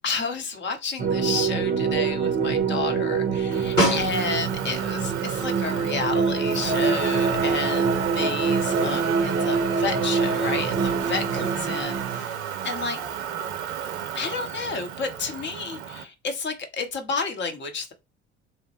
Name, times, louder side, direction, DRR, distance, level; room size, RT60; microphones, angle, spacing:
voice 1, 0.0-12.3 12.6-13.0 14.1-17.9, left 4 dB, 30° left, 0.8 m, -31 dB
sound 1, 1.0-12.2, right 5 dB, 25° right, 0.6 m, -25 dB
Motor vehicle (road), 3.5-16.0, right 8 dB, 70° right, 0.6 m, -32 dB
Snare drum, 3.8-4.7 9.1-9.2, equal, 85° left, 1.7 m, -24 dB
3.0 x 2.1 x 3.0 m
figure-of-eight pair, 60°, 36 cm